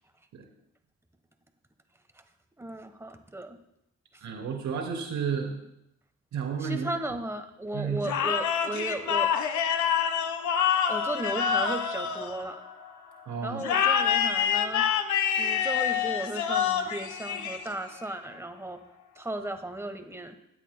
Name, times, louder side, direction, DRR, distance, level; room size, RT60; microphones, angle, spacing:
voice 1, 2.6-3.6 4.1-4.2 6.6-9.3 10.9-12.6 13.4-14.8 15.4-18.8 19.2-20.4, right 1 dB, 10° right, 7 dB, 1.1 m, -35 dB
voice 2, 4.2-5.6 6.3-6.9 7.7-8.0 13.2-13.6, right 6 dB, 70° right, 1 dB, 3.0 m, -31 dB
sound 1, 8.0-12.9 13.6-18.0, left 8 dB, 75° left, 1.0 m, -27 dB
17.0 x 9.2 x 2.2 m, 0.83 s
cardioid pair, 90°, 30 cm